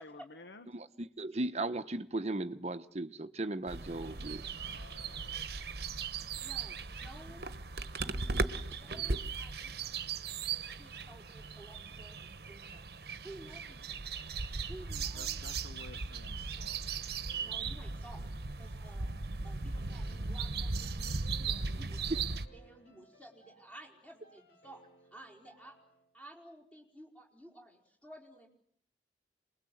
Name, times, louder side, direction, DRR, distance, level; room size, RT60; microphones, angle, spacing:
voice 1, 0.0-0.7 3.8-5.4 15.2-16.8 17.2-17.4, left 3 dB, 85° left, 8 dB, 1.1 m, -54 dB
voice 2, 0.7-4.4, right 2 dB, 35° right, 10 dB, 1.0 m, -37 dB
sound 1, 3.7-22.5, right 4 dB, 60° right, 1.0 m, -38 dB
voice 3, 6.4-7.5 8.6-9.9 10.5-15.4 17.4-18.2 18.6-19.1 19.4-22.2 22.5-24.8 25.1-25.8 26.1-28.5, right 1 dB, 5° left, 0 dB, 4.9 m, -54 dB
sound 2, 17.3-26.2, right 2 dB, 60° left, 6.6 m, -64 dB
27.5 x 21.0 x 7.9 m, 0.68 s
head